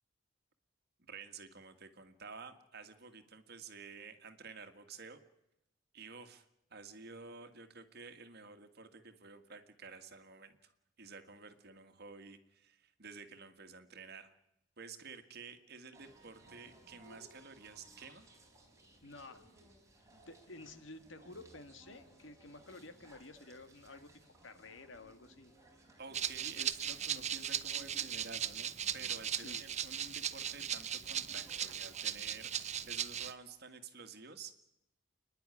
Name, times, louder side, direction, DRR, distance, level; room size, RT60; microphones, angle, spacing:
voice 1, 1.0-5.2 5.9-6.5 6.7-10.7 11.0-14.3 14.8-18.3 26.0-34.6, right 4 dB, 55° right, 8 dB, 1.8 m, -51 dB
sound 1, 15.9-32.9, right 1 dB, 15° right, 4.1 m, -62 dB
voice 2, 19.0-19.4 20.3-25.5 29.4-29.7, left 2 dB, 80° left, 9 dB, 2.0 m, -52 dB
Rattle (instrument), 26.1-33.3, right 9 dB, 35° right, 0.8 m, -38 dB
28.5 x 10.5 x 9.8 m, 0.88 s
head